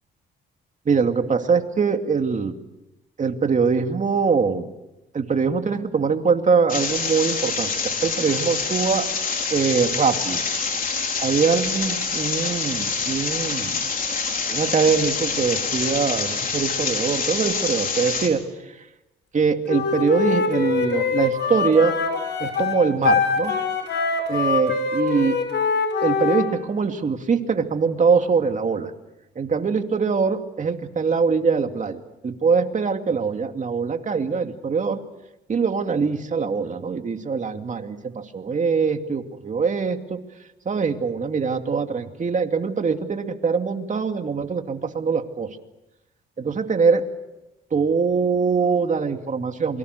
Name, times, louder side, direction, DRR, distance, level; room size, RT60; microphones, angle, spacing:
voice 1, 0.9-2.6 3.2-4.7 5.1-9.1 9.5-10.4 11.2-13.9 14.5-18.7 19.3-21.9 22.4-23.5 24.3-25.4 26.0-28.9 29.4-35.0 35.5-40.2 40.7-45.5 46.4-47.0 47.7-49.8, right 5 dB, 40° right, 6 dB, 2.5 m, -23 dB
sound 1, 6.7-18.3, left 5 dB, 45° left, 4.4 m, -26 dB
Wind instrument woodwind instrument, 19.7-26.5, left 5 dB, 60° left, 5.5 m, -23 dB
28.0 x 24.0 x 6.7 m, 0.94 s
cardioid pair, 90°, 20 cm